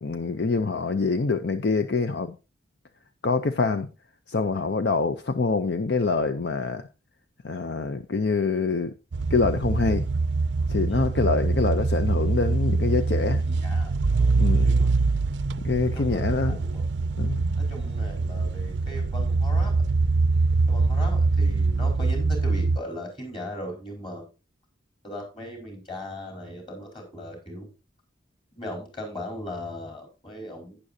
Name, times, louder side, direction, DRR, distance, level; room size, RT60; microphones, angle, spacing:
voice 1, 0.0-2.3 3.2-3.9 4.3-6.9 7.4-8.9 9.3-10.1 10.7-13.4 14.4-14.7 15.6-16.6 17.1-17.6, left 4 dB, 60° left, 0.6 m, -25 dB
sound 1, 9.1-22.8, right 3 dB, 65° right, 0.5 m, -24 dB
voice 2, 13.2-14.9 15.9-16.2 16.5-16.9 17.6-19.7 20.7-24.3 25.0-27.7 28.5-30.8, equal, 25° left, 4.6 m, -38 dB
11.5 x 9.8 x 2.7 m
head